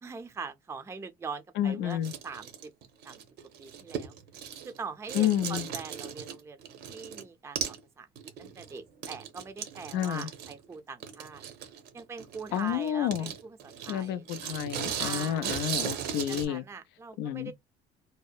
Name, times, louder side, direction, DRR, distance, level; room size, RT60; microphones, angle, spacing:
voice 1, 0.0-2.7 3.0-3.2 3.6-4.2 4.6-8.1 8.4-11.4 11.9-14.2 15.0-15.6 16.3-17.5, right 4 dB, 15° right, 0.4 m, -42 dB
voice 2, 1.6-2.1 5.1-5.6 9.9-10.3 12.5-13.3 13.9-16.6 17.2-17.5, left 11 dB, 90° left, 0.4 m, -30 dB
sound 1, 1.9-4.8 5.1-7.2 7.6-7.8 8.2-16.5, right 8 dB, 75° right, 0.7 m, -37 dB
2.7 x 2.1 x 2.3 m
cardioid pair, 110°, 17 cm